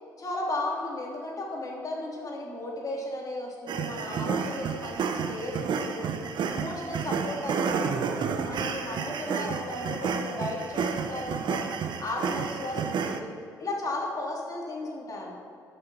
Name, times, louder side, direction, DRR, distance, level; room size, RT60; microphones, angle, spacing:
voice 1, 0.2-6.2 6.5-11.6 12.0-13.3 13.6-15.3, left 2 dB, 40° left, -2 dB, 3.2 m, -35 dB
sound 1, 3.7-13.2, right 6 dB, 55° right, 0.9 m, -30 dB
13.0 x 6.9 x 5.7 m, 2.3 s
hypercardioid pair, 55°, 9 cm